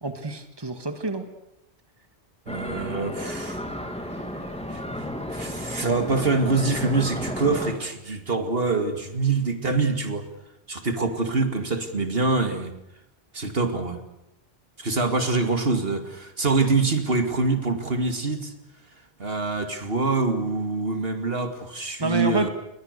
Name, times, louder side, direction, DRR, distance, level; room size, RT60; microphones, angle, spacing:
voice 1, 0.0-1.3 22.0-22.5, right 2 dB, 25° right, 7 dB, 2.1 m, -28 dB
sound 1, 2.5-7.7, equal, 5° left, 2.9 m, -33 dB
voice 2, 2.5-3.7 4.7-10.3 10.7-12.7 13.3-14.0 14.8-18.5 19.2-22.5, right 3 dB, 65° right, 7 dB, 2.6 m, -25 dB
29.5 x 22.5 x 6.8 m, 0.85 s
omnidirectional pair, 1.1 m